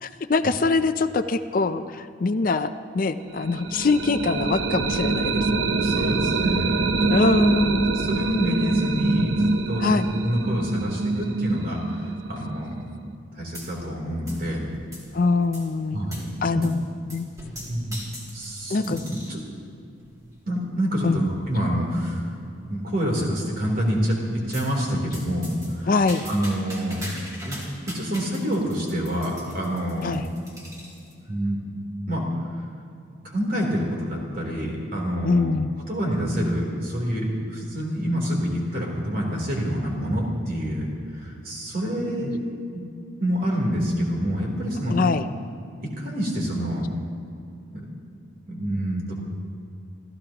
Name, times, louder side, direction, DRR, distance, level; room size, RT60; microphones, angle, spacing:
voice 1, 0.0-5.8 7.1-7.9 9.8-10.1 15.1-16.0 16.4-17.3 18.7-19.0 21.0-21.2 25.9-26.3 30.0-30.3 35.2-35.7 42.2-42.3 44.9-45.2, left 3 dB, 45° left, 11 dB, 0.5 m, -23 dB
sound 1, 3.4-13.1, right 3 dB, 70° right, 0.7 m, -25 dB
voice 2, 5.8-7.3 7.9-12.0 12.3-13.1 13.4-14.7 15.9-16.6 17.7-18.0 18.3-18.9 19.3-19.4 20.5-22.3 22.7-25.9 26.3-27.0 27.4-27.6 27.9-30.1 31.2-31.6 32.1-32.2 33.2-35.5 35.9-40.9 41.1-42.4 42.7-42.8 43.2-45.0 45.8-46.9 47.7-47.9 48.5-49.1, equal, 45° right, -2 dB, 3.3 m, -27 dB
sound 2, 13.5-14.0 14.3-15.2 15.5-15.7 16.1-16.3 16.6-16.8 17.1-19.4 20.0-20.4 21.0-21.1 21.5-21.6 21.9-22.0 22.4-22.9 24.5-24.7 25.1-31.1, equal, 15° right, 2.6 m, -41 dB
28.5 x 14.5 x 3.0 m, 2.5 s
head